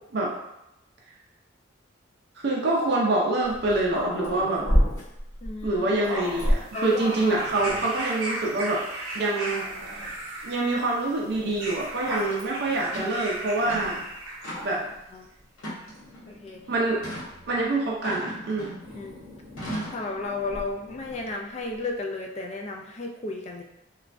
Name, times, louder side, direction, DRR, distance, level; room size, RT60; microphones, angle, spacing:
voice 1, 2.4-4.6 5.6-8.8 9.1-9.7 10.4-14.0 14.6-14.8 16.7-17.0 17.5-18.7, right 2 dB, 55° right, -3 dB, 0.4 m, -25 dB
Growling, 3.4-8.0 8.7-8.8 9.2-10.2 11.3-14.1 14.5-15.0 15.9-17.7 18.8-21.3, equal, 15° left, 0.8 m, -32 dB
voice 2, 5.4-5.9 6.7-7.4 15.1-15.3 16.3-16.6 19.0-19.2 19.9-23.6, left 3 dB, 30° left, 2 dB, 0.3 m, -33 dB
sound 1, 6.2-14.9 15.8-15.9, right 2 dB, 85° right, 0.7 m, -37 dB
sound 2, 12.3-12.4 12.9-13.2 13.6-14.0 14.4-14.9 15.6-16.2 17.0-17.3 18.0-18.9 19.6-20.1, equal, 80° left, 1.0 m, -36 dB
3.1 x 2.2 x 2.5 m, 0.86 s
head